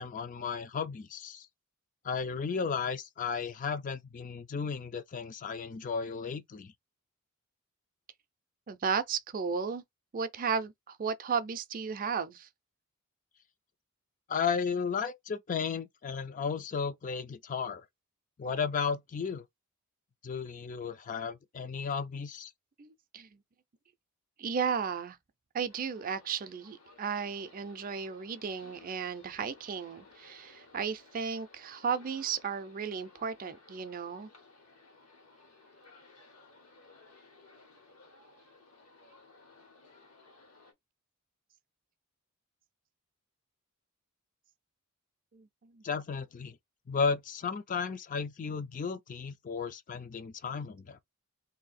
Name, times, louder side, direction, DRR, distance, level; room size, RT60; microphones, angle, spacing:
voice 1, 0.0-1.5 2.0-6.7 14.3-17.8 18.4-19.4 20.2-22.5 45.8-46.6 46.9-51.0, left 5 dB, 35° left, 0.4 m, -34 dB
voice 2, 8.7-9.8 10.1-12.5 22.8-23.3 24.4-25.2 25.5-34.3 45.3-45.8, right 6 dB, 40° right, 0.4 m, -34 dB
sound 1, 25.7-40.7, left 3 dB, 80° left, 1.4 m, -58 dB
2.7 x 2.7 x 4.1 m
head